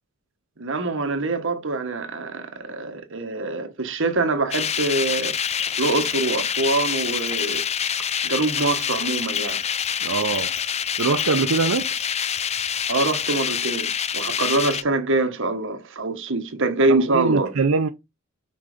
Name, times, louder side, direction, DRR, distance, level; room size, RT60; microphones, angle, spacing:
voice 1, 0.6-5.4 5.8-7.6 8.2-9.6 12.9-17.6, right 2 dB, 65° right, 1.3 m, -24 dB
sound 1, 4.5-14.8, left 8 dB, 30° left, 0.5 m, -26 dB
voice 2, 10.0-10.5 11.0-11.9 16.9-17.9, right 4 dB, 85° right, 0.6 m, -23 dB
6.0 x 3.8 x 5.0 m
head